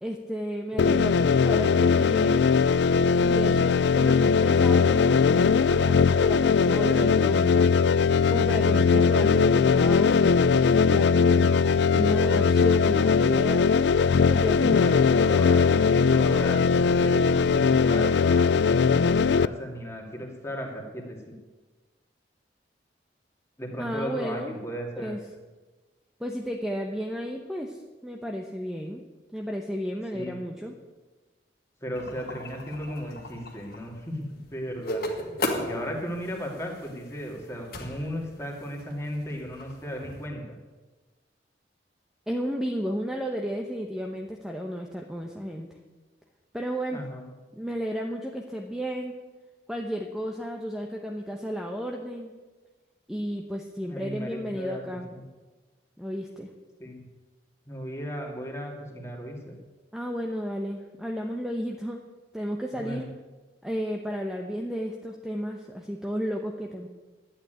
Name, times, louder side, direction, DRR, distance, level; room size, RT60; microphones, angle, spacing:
voice 1, 0.0-2.5 3.2-7.7 8.3-13.7 14.1-16.3 23.8-24.6 24.9-25.2 26.2-29.0 29.3-30.7 42.3-45.7 46.5-47.0 47.5-49.1 49.7-52.3 53.1-55.1 56.0-56.5 59.9-62.0 62.3-63.1 63.6-66.9, equal, 5° right, 1 dB, 0.9 m, -33 dB
sound 1, 0.8-19.5, left 5 dB, 75° left, 0.4 m, -20 dB
voice 2, 14.6-21.2 23.6-25.1 30.1-30.4 31.8-35.4 35.6-40.6 46.9-47.2 53.9-54.8 55.1-55.2 56.8-57.0 57.7-59.6 62.7-63.1, equal, 15° left, 0 dB, 2.5 m, -35 dB
sound 2, 31.9-40.3, left 1 dB, 60° left, 1.9 m, -37 dB
11.5 x 8.8 x 9.0 m, 1.3 s
head